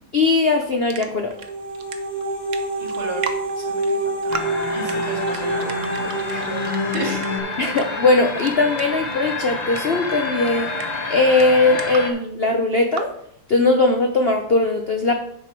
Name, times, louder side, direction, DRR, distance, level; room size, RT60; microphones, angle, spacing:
voice 1, 0.1-1.3 6.3-6.4 7.6-10.8 11.1-13.1 13.5-15.1, left 3 dB, 70° left, 4 dB, 0.5 m, -19 dB
sound 1, 0.6-1.5 1.7-3.5 3.8-3.9 4.3-4.9 5.2-12.0 12.7-13.0, right 6 dB, 55° right, 0.9 m, -34 dB
sound 2, 1.3-7.4, right 1 dB, 20° right, 1.3 m, -26 dB
voice 2, 2.8-3.2 3.6-4.4 4.7-6.6 6.9-7.2, right 1 dB, 75° right, 0 dB, 3.1 m, -33 dB
sound 3, 4.3-12.1, left 3 dB, 35° left, 0.7 m, -29 dB
9.2 x 5.9 x 4.5 m, 0.71 s
omnidirectional pair, 2.1 m